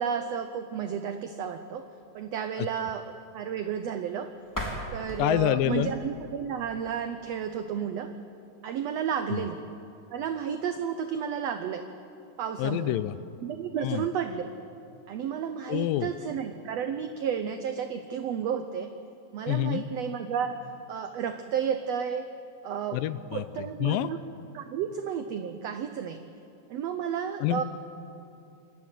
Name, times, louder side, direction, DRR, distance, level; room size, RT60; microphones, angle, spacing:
voice 1, 0.0-1.8 2.1-3.0 3.3-4.3 4.9-8.1 8.6-9.6 10.1-11.8 12.4-13.0 13.4-14.5 15.1-18.9 19.3-20.6 20.9-22.3 22.6-23.0 23.3-24.2 24.5-26.2 26.7-27.6, right 8 dB, 85° right, 8 dB, 1.4 m, -32 dB
sound 1, 4.4-7.3, equal, 5° left, 2.4 m, -39 dB
voice 2, 5.2-5.9 9.3-9.4 12.6-13.1 13.8-14.1 15.7-16.1 19.5-19.8 22.9-24.1 27.4-27.6, left 14 dB, 85° left, 15 dB, 2.3 m, -27 dB
26.5 x 13.0 x 9.2 m, 2.8 s
omnidirectional pair, 4.0 m